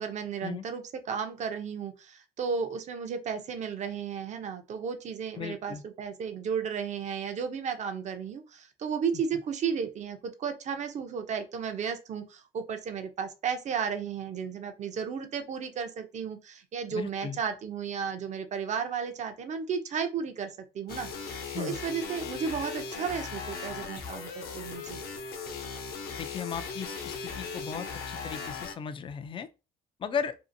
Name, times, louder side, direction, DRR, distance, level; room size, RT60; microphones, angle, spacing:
voice 1, 0.0-25.0, right 6 dB, 45° right, 0.5 m, -34 dB
voice 2, 5.4-5.8 16.9-17.4 21.5-21.8 26.2-29.5 30.0-30.4, left 7 dB, 30° left, 0.3 m, -36 dB
sound 1, 20.9-28.7, left 5 dB, 65° left, 0.7 m, -38 dB
2.7 x 2.5 x 2.5 m
cardioid pair, 110°, 17 cm